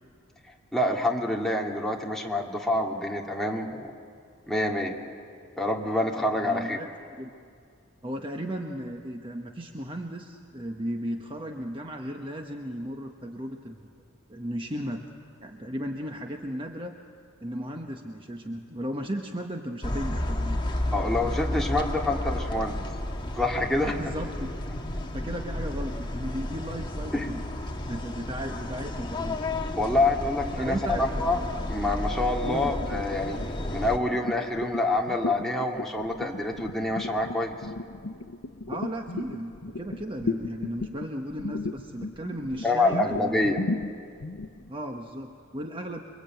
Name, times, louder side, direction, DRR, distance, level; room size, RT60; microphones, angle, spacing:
voice 1, 0.7-3.9 4.5-5.0 5.6-6.8 20.9-22.8 23.3-24.0 27.1-27.3 29.8-31.4 31.7-33.4 33.7-37.5 42.6-43.6, left 2 dB, ahead, -1 dB, 2.4 m, -26 dB
voice 2, 6.4-6.9 7.2-7.3 8.0-13.8 14.3-15.1 15.4-16.9 17.4-20.6 20.9-21.1 23.9-24.5 25.1-29.4 30.6-31.0 32.4-32.7 38.7-43.5 44.7-46.0, equal, 25° right, 3 dB, 1.1 m, -35 dB
sound 1, 19.8-34.0, left 1 dB, 20° left, 1.8 m, -32 dB
sound 2, 32.4-44.7, left 3 dB, 70° left, 0.9 m, -36 dB
28.0 x 23.5 x 9.1 m, 2.2 s
head